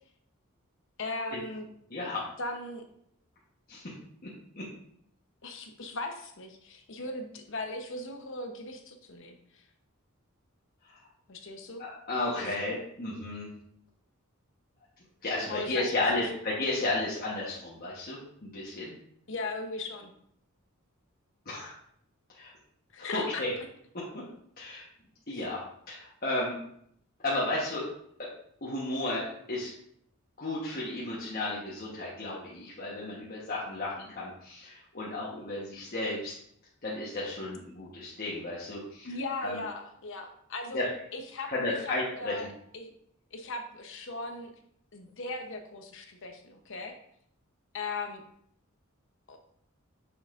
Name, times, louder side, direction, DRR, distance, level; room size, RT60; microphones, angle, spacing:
voice 1, 1.0-1.7 2.4-2.8 5.4-9.6 11.3-11.8 12.3-12.7 15.5-16.3 19.3-20.1 22.9-23.4 39.0-40.8 41.1-42.5 42.7-42.9 43.3-44.5 44.9-47.0 47.7-48.2 49.3-49.4, left 2 dB, 60° left, 5 dB, 0.9 m, -38 dB
voice 2, 1.9-2.3 3.7-3.8 4.6-4.7 11.8-13.5 15.2-18.9 21.5-21.7 22.4-22.5 23.0-23.5 24.6-24.8 25.3-26.5 27.2-27.8 28.6-29.7 30.4-36.3 36.8-39.1 39.4-39.6 40.7-40.9 41.5-42.4, left 2 dB, 45° left, -6 dB, 1.2 m, -33 dB
6.4 x 6.2 x 2.5 m, 0.69 s
head